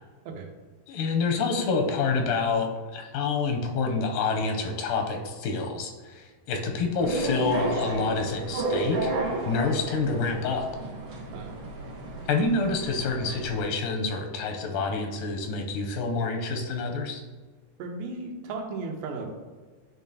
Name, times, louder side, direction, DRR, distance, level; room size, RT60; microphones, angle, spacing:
voice 1, 0.9-9.2 9.5-10.7 12.3-17.2, left 4 dB, 85° left, 2 dB, 2.2 m, -27 dB
sound 1, 7.0-13.6, right 2 dB, 60° right, 1.4 m, -32 dB
voice 2, 17.8-19.4, right 3 dB, 80° right, 3 dB, 2.4 m, -35 dB
10.0 x 3.7 x 2.8 m, 1.4 s
omnidirectional pair, 3.8 m